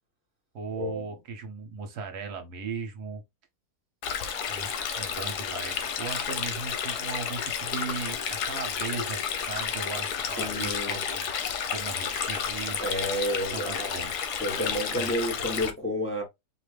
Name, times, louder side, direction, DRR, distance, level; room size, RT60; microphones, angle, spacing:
voice 1, 0.5-3.2 4.5-11.3 11.7-12.8 13.5-14.1 14.5-15.1, right 5 dB, 80° right, 1.5 m, -38 dB
Stream, 4.0-15.7, left 7 dB, 90° left, 1.4 m, -31 dB
voice 2, 10.4-11.0 12.8-13.9 14.4-16.2, equal, 10° left, 1.1 m, -30 dB
4.4 x 2.7 x 3.3 m
omnidirectional pair, 1.7 m